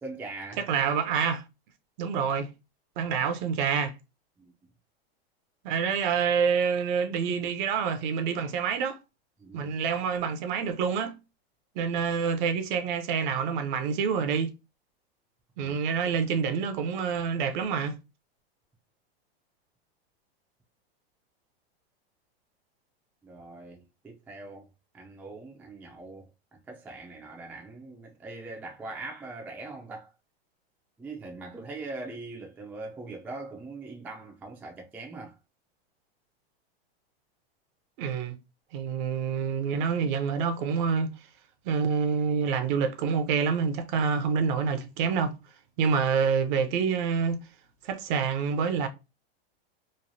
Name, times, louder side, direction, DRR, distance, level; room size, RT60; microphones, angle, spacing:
voice 1, 0.0-0.7 4.4-4.7 9.4-9.7 15.6-15.7 23.2-24.7 24.9-30.1 31.0-35.4, right 3 dB, 5° right, 0.3 m, -42 dB
voice 2, 0.6-1.4 2.0-2.5 3.0-3.9 5.6-9.0 9.5-11.2 11.8-14.5 15.6-17.9 38.0-38.4 38.7-41.1 41.7-45.3 45.8-47.4 47.8-48.9, right 6 dB, 50° right, 0.5 m, -27 dB
3.1 x 2.0 x 2.6 m
supercardioid pair, 130°, 31 cm